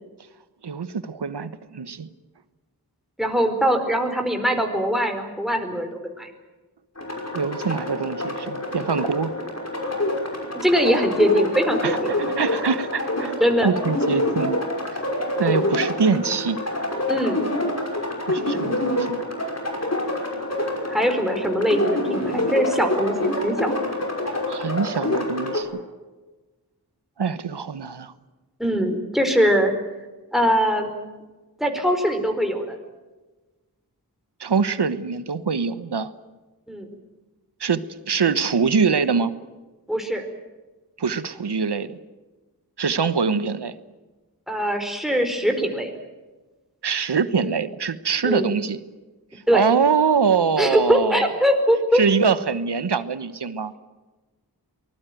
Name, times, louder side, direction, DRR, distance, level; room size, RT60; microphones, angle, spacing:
voice 1, 0.6-2.1 7.3-9.3 11.8-12.0 12.4-14.6 14.9-15.0 15.4-16.6 18.3-19.2 24.5-25.8 27.2-28.1 34.4-36.1 37.6-39.3 41.0-42.0 42.8-43.8 46.8-48.8 49.3-51.3 51.9-53.7, right 5 dB, 90° right, 13 dB, 1.2 m, -24 dB
voice 2, 3.2-5.9 6.2-6.3 10.6-12.1 13.4-13.7 17.1-17.4 20.9-23.1 23.4-23.7 28.6-29.7 30.3-30.9 31.6-32.8 36.7-36.9 39.9-40.3 44.5-45.9 48.2-48.5 49.5-49.7 50.6-52.0, equal, ahead, 4 dB, 4.5 m, -21 dB
sound 1, 7.0-25.6, left 1 dB, 40° left, 5.6 m, -26 dB
24.0 x 20.5 x 9.2 m, 1.2 s
wide cardioid pair, 70°, 39 cm